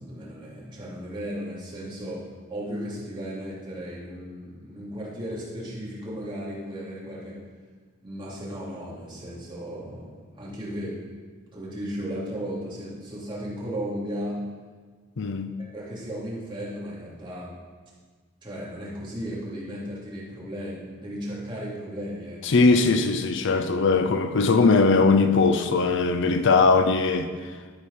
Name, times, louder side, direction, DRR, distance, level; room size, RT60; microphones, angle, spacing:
voice 1, 0.0-7.4 8.0-11.1 11.5-14.5 15.7-17.5 18.4-22.6, equal, 25° right, 2.8 m, -35 dB
voice 2, 15.2-15.5 22.4-27.3, left 4 dB, 65° left, 0.6 m, -20 dB
12.5 x 4.9 x 5.6 m
head